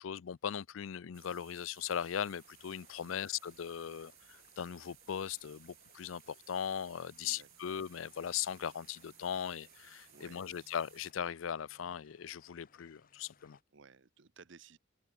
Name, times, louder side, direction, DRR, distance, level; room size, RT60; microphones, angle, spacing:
voice 1, 0.0-13.6, left 8 dB, 80° left, 0.4 m, -39 dB
sound 1, 1.1-11.1, right 15 dB, 90° right, 1.6 m, -61 dB
sound 2, 1.8-13.6, left 5 dB, 45° left, 2.1 m, -67 dB
voice 2, 3.0-3.3 7.2-7.5 10.1-10.7 13.7-14.8, right 5 dB, 65° right, 0.9 m, -58 dB
head